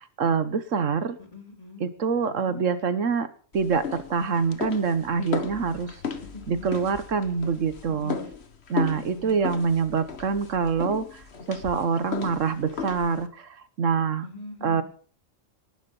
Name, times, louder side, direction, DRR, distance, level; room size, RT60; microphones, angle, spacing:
voice 1, 0.0-1.2 1.8-3.3 3.5-6.0 6.5-8.2 8.7-14.2 14.6-14.8, right 5 dB, 70° right, 13 dB, 1.5 m, -25 dB
voice 2, 1.2-1.9 2.2-2.6 6.2-6.7 8.0-8.3 8.9-9.4 14.2-14.8, left 3 dB, 30° left, 3 dB, 4.0 m, -43 dB
sound 1, 3.5-13.3, left 6 dB, 55° left, 1.7 m, -35 dB
19.0 x 11.0 x 5.4 m, 0.42 s
omnidirectional pair, 1.3 m